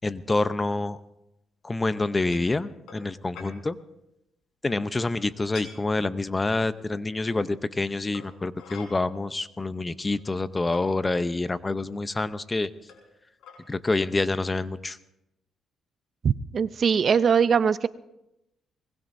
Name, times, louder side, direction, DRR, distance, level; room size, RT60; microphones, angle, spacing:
voice 1, 0.0-1.0 1.6-3.8 4.6-12.7 13.7-15.0, left 2 dB, 20° left, 13 dB, 0.7 m, -27 dB
sound 1, 2.3-2.5 2.9-3.1 3.3-3.5 4.9-5.2 5.5-5.7 7.0-7.1 8.1-8.9 9.8-9.9 10.2-10.8 11.7-11.8 12.9-13.1 13.4-13.6, left 6 dB, 80° left, 4.5 m, -45 dB
voice 2, 16.2-17.9, right 6 dB, 50° right, 15 dB, 0.5 m, -21 dB
23.5 x 20.5 x 2.7 m, 0.87 s
cardioid pair, 90°, 0 cm